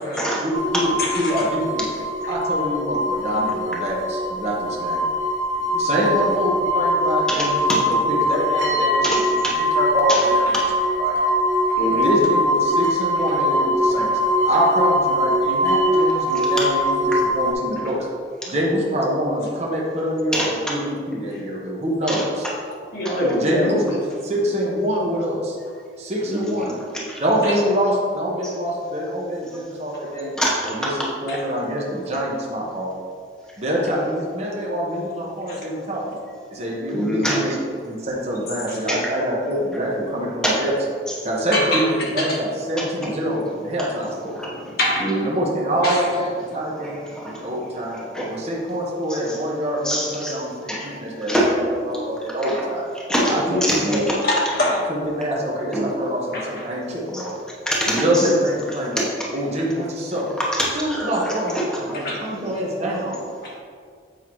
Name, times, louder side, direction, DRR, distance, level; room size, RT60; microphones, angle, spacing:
voice 1, 0.0-1.8 2.3-5.0 5.7-10.5 11.0-11.2 11.9-14.1 14.5-18.1 18.5-22.5 23.4-25.5 26.0-26.7 27.2-30.3 30.7-32.9 33.6-36.0 36.5-37.6 37.8-40.7 41.1-44.4 45.2-48.0 48.3-51.5 51.9-52.9 53.3-54.0 54.9-57.3 57.9-59.0 59.3-60.2 60.7-61.5 61.9-63.2, equal, 35° right, -4 dB, 1.0 m, -25 dB
sound 1, 0.5-17.5, equal, 70° right, 1.5 m, -21 dB
voice 2, 7.3-7.8 9.0-9.5 10.1-10.3 16.6-16.7 20.3-20.7 22.1-22.2 23.0-23.2 26.3-26.8 27.1-27.2 28.4-28.5 30.4-30.8 36.9-37.4 38.9-39.0 40.4-40.5 43.0-43.1 44.3-44.7 45.0-45.3 46.8-46.9 47.1-47.5 48.1-48.3 49.1-49.4 49.8-50.3 50.7-50.9 51.3-51.6 52.4-52.6 53.1-54.2 55.7-55.9 57.1-57.3 57.7-58.3 59.0-59.1 60.5-62.1 62.4-62.5, equal, 5° left, -5 dB, 1.0 m, -24 dB
voice 3, 11.8-12.1 22.9-23.8 27.4-27.5 31.3-31.4 35.5-35.6 38.7-38.8 41.5-41.8 42.2-42.4 44.8-45.1 45.8-46.0 54.2-54.8 56.3-56.6 62.0-62.2 63.4-63.6, left 1 dB, 55° left, -4 dB, 1.5 m, -23 dB
8.1 x 5.5 x 3.1 m, 2.1 s
head